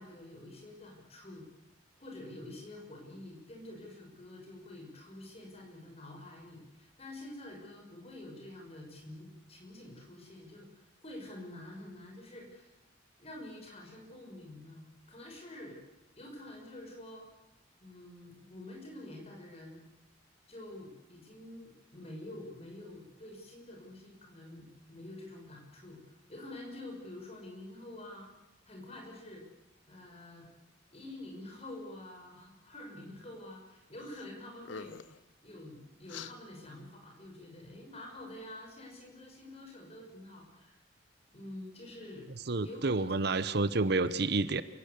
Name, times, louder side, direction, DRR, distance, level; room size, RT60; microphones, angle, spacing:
voice 1, 0.0-1.5 2.0-12.7 13.2-15.8 16.2-17.3 17.8-19.8 20.5-26.0 26.3-28.3 28.7-29.4 29.9-30.5 30.9-40.8 41.3-42.3 42.6-43.3, left 1 dB, 30° left, 1 dB, 6.4 m, -48 dB
sound 1, 34.0-34.3 34.6-35.2 36.1-36.3, left 6 dB, 70° left, 0.9 m, -45 dB
voice 2, 42.5-44.6, right 3 dB, 55° right, 14 dB, 0.9 m, -29 dB
28.5 x 17.5 x 8.3 m, 0.97 s
head